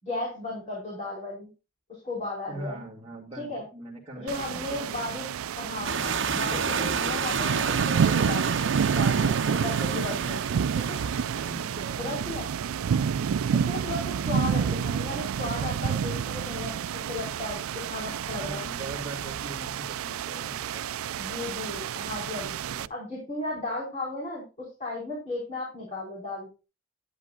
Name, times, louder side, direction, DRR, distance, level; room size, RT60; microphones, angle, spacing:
voice 1, 0.0-1.5 1.9-2.8 3.4-3.6 4.1-5.2 5.6-8.6 8.9-10.4 10.9-11.0 11.9-12.5 13.5-18.7 21.2-26.5, left 2 dB, 35° left, -5 dB, 5.0 m, -35 dB
voice 2, 2.5-4.9 10.2-10.4 11.4-12.2 18.2-21.2 22.6-22.9, right 2 dB, 25° right, -5 dB, 2.4 m, -42 dB
sound 1, 4.3-22.9, right 7 dB, 90° right, 0.4 m, -29 dB
sound 2, 5.8-11.9, right 6 dB, 60° right, 1.0 m, -30 dB
11.0 x 10.5 x 2.4 m, 0.31 s
head